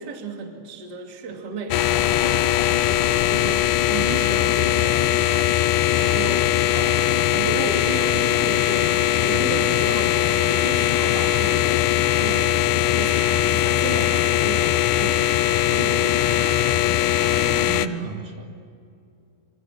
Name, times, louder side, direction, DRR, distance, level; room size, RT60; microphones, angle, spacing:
voice 1, 0.0-5.5 6.0-16.7, right 4 dB, 30° right, 3 dB, 2.6 m, -34 dB
sound 1, 1.7-17.9, left 12 dB, 85° left, 1.8 m, -20 dB
voice 2, 17.3-18.5, right 5 dB, 60° right, 3 dB, 3.6 m, -33 dB
27.5 x 25.0 x 7.6 m, 2.5 s
omnidirectional pair, 4.5 m